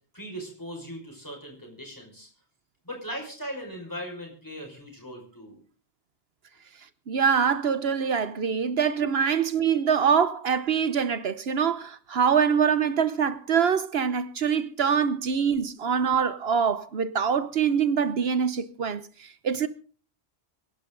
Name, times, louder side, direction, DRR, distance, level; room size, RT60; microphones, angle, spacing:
voice 1, 0.1-2.3 2.8-5.6, equal, 20° left, 5.6 m, -39 dB
voice 2, 7.1-19.7, right 7 dB, 70° right, 1.1 m, -24 dB
25.0 x 11.5 x 3.9 m
omnidirectional pair, 1.1 m